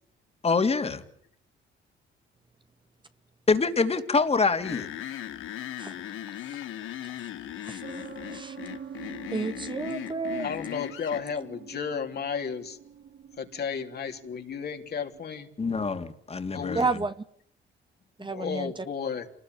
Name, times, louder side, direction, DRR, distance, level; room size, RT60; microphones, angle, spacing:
voice 1, 0.4-1.0 3.5-4.9 15.6-17.0, left 4 dB, 30° left, 8 dB, 3.0 m, -25 dB
sound 1, 4.6-11.2, left 12 dB, 85° left, 2.2 m, -38 dB
sound 2, 7.8-15.3, right 7 dB, 55° right, 3.1 m, -46 dB
voice 2, 9.3-10.5 16.7-17.1 18.2-18.8, right 4 dB, 25° right, 10 dB, 1.5 m, -30 dB
voice 3, 10.4-12.8 13.4-15.5 16.5-16.8 18.2-19.3, left 6 dB, 55° left, 4 dB, 3.5 m, -33 dB
28.0 x 19.5 x 9.6 m, 0.70 s
cardioid pair, 90°, 20 cm